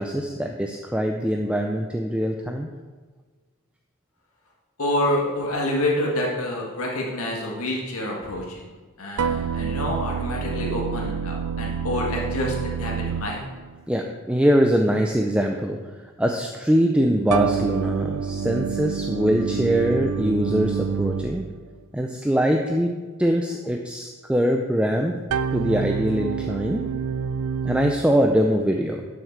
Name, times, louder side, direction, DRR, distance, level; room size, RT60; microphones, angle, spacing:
voice 1, 0.0-2.7 13.9-15.8 16.2-21.5 21.9-22.9 23.2-25.1 25.5-26.9 27.6-29.0, equal, 5° right, 2 dB, 0.4 m, -22 dB
voice 2, 4.8-8.6 9.0-13.4, left 1 dB, 80° left, -1 dB, 1.6 m, -27 dB
sound 1, 9.2-13.8 17.3-21.6 25.3-27.9, right 6 dB, 80° right, 0.4 m, -27 dB
11.5 x 6.5 x 4.6 m, 1.4 s
head